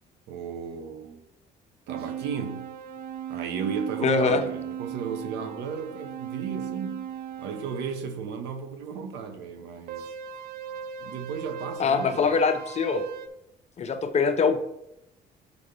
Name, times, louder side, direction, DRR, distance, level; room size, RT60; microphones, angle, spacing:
voice 1, 0.3-1.2 1.9-2.6 3.3-7.1 7.4-10.1 11.0-12.4, right 6 dB, 80° right, 1.0 m, -35 dB
sound 1, 1.9-8.0 9.9-13.3, right 8 dB, 65° right, 0.6 m, -37 dB
voice 2, 4.0-4.4 11.8-13.0 13.8-14.6, left 5 dB, 40° left, 0.8 m, -23 dB
6.2 x 5.2 x 5.1 m
cardioid pair, 110°, 17 cm